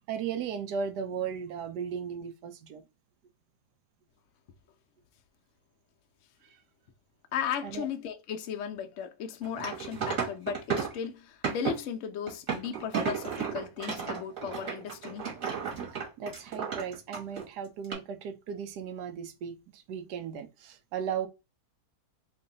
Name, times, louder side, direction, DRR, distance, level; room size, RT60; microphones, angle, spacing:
voice 1, 0.1-2.8 7.6-7.9 16.2-21.3, right 7 dB, 75° right, 1.2 m, -36 dB
voice 2, 7.3-15.3, left 8 dB, 75° left, 0.7 m, -36 dB
sound 1, 9.4-11.0 11.4-11.8 12.3-17.5 17.8-17.9, right 6 dB, 50° right, 1.5 m, -33 dB
3.1 x 2.2 x 3.8 m
omnidirectional pair, 1.8 m